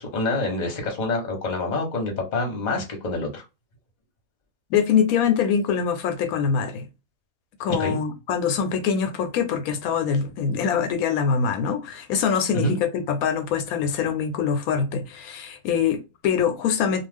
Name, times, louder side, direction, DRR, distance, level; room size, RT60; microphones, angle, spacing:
voice 1, 0.0-3.4 7.7-8.0 12.6-12.8, left 2 dB, 35° left, 0.9 m, -26 dB
voice 2, 4.7-6.9 7.6-17.1, left 7 dB, 85° left, 1.0 m, -24 dB
2.4 x 2.4 x 3.3 m
omnidirectional pair, 1.5 m